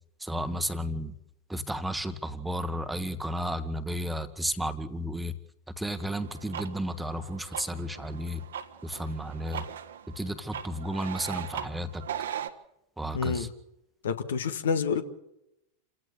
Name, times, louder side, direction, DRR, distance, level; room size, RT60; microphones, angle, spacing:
voice 1, 0.2-1.2 1.5-5.4 5.8-8.4 8.8-9.6 10.1-12.1 13.0-13.5, equal, 5° right, 1.5 m, -33 dB
sound 1, 6.0-12.5, right 9 dB, 65° right, 1.5 m, -40 dB
voice 2, 13.1-13.5 14.0-15.0, left 6 dB, 65° left, 1.7 m, -28 dB
29.0 x 16.5 x 6.8 m
figure-of-eight pair, 90°, 0 cm